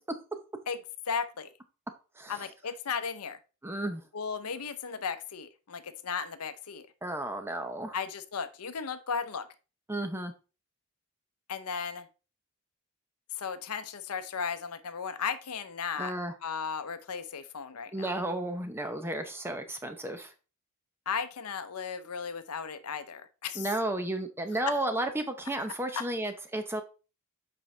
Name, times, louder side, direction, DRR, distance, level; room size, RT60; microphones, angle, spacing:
voice 1, 1.1-1.5 2.3-3.4 4.1-6.9 7.9-9.5 11.5-12.1 13.4-16.1 16.4-18.1 21.1-23.7 24.7-24.8 25.9-26.0, left 6 dB, 85° left, 0.7 m, -35 dB
voice 2, 2.2-2.5 3.6-4.0 7.0-8.0 9.9-10.3 16.0-16.3 17.9-20.3 23.5-26.8, right 1 dB, 10° right, 0.7 m, -33 dB
7.5 x 5.3 x 3.3 m
head